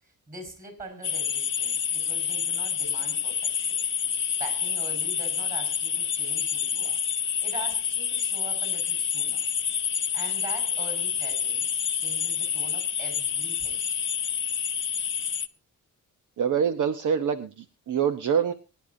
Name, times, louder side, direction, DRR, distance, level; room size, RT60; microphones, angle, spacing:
voice 1, 0.0-3.8 4.4-7.0 7.4-9.4 10.1-13.8, right 2 dB, 25° right, 6 dB, 5.5 m, -43 dB
sound 1, 1.0-15.5, left 8 dB, 40° left, 0.6 m, -28 dB
voice 2, 16.4-18.5, right 7 dB, 65° right, 8 dB, 1.0 m, -25 dB
23.5 x 10.5 x 2.7 m, 0.29 s
wide cardioid pair, 140°, 32 cm